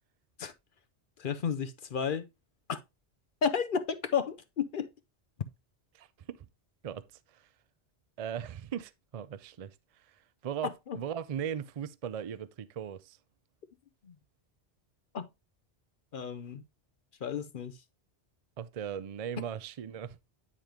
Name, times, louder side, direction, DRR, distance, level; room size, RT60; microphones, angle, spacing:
voice 1, 1.2-2.3 2.7-2.8 3.4-4.9 10.6-11.0 14.0-14.1 15.1-15.3 16.1-16.6 17.2-17.8, left 6 dB, 55° left, 0.8 m, -32 dB
voice 2, 5.9-6.5 6.8-7.0 7.3-7.5 8.2-13.2 18.6-20.2, right 8 dB, 50° right, 0.4 m, -38 dB
9.9 x 5.2 x 2.9 m
omnidirectional pair, 1.1 m